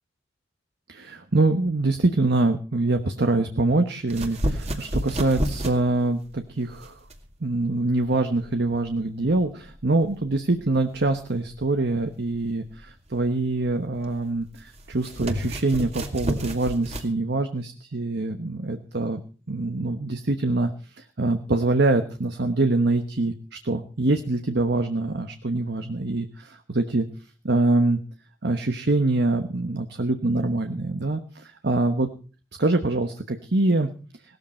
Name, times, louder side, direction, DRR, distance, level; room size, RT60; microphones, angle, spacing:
voice 1, 0.9-6.9 7.4-19.2 19.5-20.7 21.0-27.0 27.4-28.0 28.4-32.1 32.6-33.9, right 2 dB, 60° right, 7 dB, 1.1 m, -24 dB
sound 1, 4.1-17.1, equal, 35° right, 2.2 m, -33 dB
17.5 x 13.5 x 4.4 m, 0.37 s
head